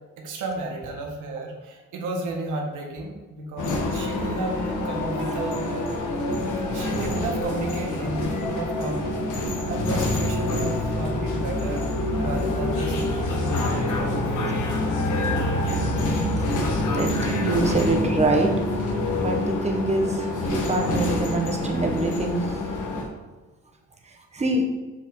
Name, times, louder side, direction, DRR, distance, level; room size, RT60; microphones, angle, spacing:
voice 1, 0.2-5.6 6.7-9.0 9.7-11.8 12.2-13.0 13.3-14.3, right 2 dB, 90° right, 1 dB, 1.6 m, -32 dB
sound 1, 3.6-23.0, left 1 dB, 80° left, 1.6 m, -26 dB
voice 2, 16.0-18.5 19.2-22.6 24.3-24.7, right 2 dB, 20° right, 1 dB, 1.3 m, -26 dB
7.6 x 5.6 x 3.9 m, 1.2 s
cardioid pair, 90°, 30 cm